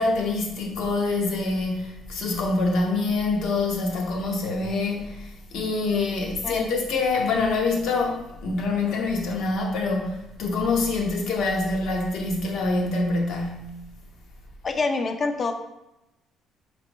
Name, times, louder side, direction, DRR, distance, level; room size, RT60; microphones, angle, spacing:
voice 1, 0.0-13.7, left 3 dB, 70° left, 1.0 m, -25 dB
voice 2, 14.6-15.5, left 3 dB, 30° left, 0.5 m, -26 dB
5.1 x 3.3 x 3.0 m
cardioid pair, 135°, 0 cm